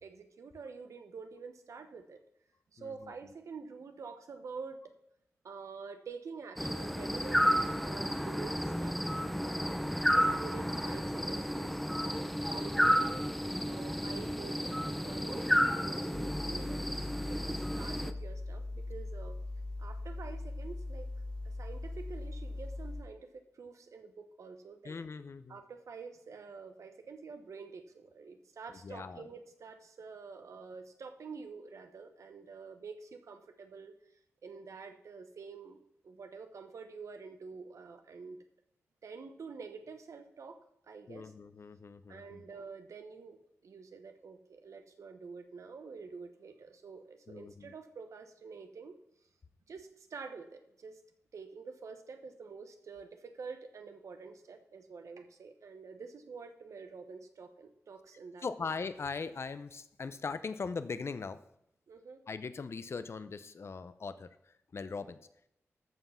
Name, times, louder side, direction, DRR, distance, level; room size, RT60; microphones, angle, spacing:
voice 1, 0.0-2.2 2.7-4.8 5.4-9.1 9.4-9.7 10.1-11.7 12.1-13.2 13.6-19.4 19.8-21.1 21.4-25.0 25.5-33.9 34.4-38.4 39.0-41.3 42.1-49.0 49.7-51.0 51.3-58.5 61.9-62.2, right 5 dB, 80° right, 7 dB, 1.1 m, -48 dB
voice 2, 2.8-3.1 24.8-25.6 28.8-29.3 41.1-42.4 47.3-47.7 58.4-61.4 62.3-64.3 64.7-65.2, left 4 dB, 55° left, 12 dB, 0.7 m, -40 dB
sound 1, 6.6-18.1, equal, ahead, 0.7 m, -32 dB
sound 2, 16.1-23.0, left 2 dB, 25° left, 1.9 m, -40 dB
13.5 x 5.7 x 5.7 m, 0.77 s
wide cardioid pair, 85°, 5 cm